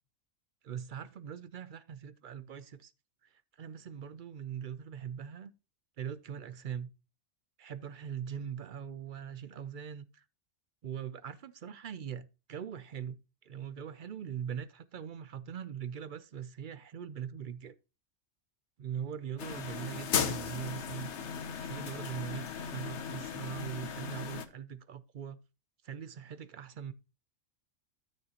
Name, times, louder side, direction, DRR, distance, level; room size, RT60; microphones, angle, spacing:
voice 1, 0.6-2.9 3.2-5.5 6.0-6.9 7.6-10.2 10.8-17.8 18.8-21.1 21.6-25.4 25.8-26.9, right 8 dB, 60° right, 0.5 m, -41 dB
sound 1, 19.4-24.5, left 7 dB, 65° left, 1.1 m, -36 dB
13.0 x 6.4 x 2.9 m
omnidirectional pair, 1.3 m